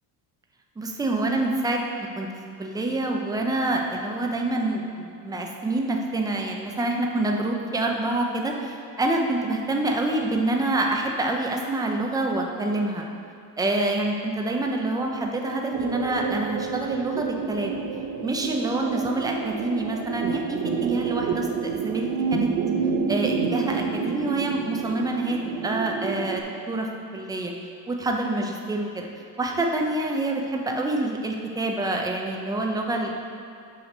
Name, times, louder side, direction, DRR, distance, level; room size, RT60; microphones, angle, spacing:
voice 1, 0.8-1.8 2.2-2.3 2.6-13.0 13.6-17.8 18.2-22.5 23.1-26.9 27.1-27.5 27.9-29.1 29.4-33.1, right 2 dB, 10° right, 1 dB, 0.5 m, -27 dB
sound 1, 15.7-26.4, right 5 dB, 50° right, 0.6 m, -29 dB
5.9 x 4.9 x 6.6 m, 2.4 s
cardioid pair, 155°, 42 cm